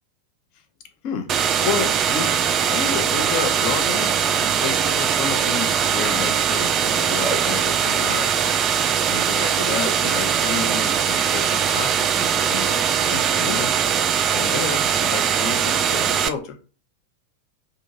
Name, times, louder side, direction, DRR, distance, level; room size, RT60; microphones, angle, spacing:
voice 1, 1.0-2.3 2.7-8.3 9.1-13.8 14.3-16.6, left 7 dB, 45° left, 6 dB, 0.6 m, -31 dB
sound 1, 1.3-16.3, right 8 dB, 30° right, 0.3 m, -21 dB
sound 2, 3.8-4.0 4.3-4.6 5.3-5.6 5.9-6.3 7.2-7.5 7.8-8.1 9.8-10.0, equal, 5° left, 0.9 m, -33 dB
2.7 x 2.6 x 3.9 m, 0.36 s
figure-of-eight pair, 90°, 0 cm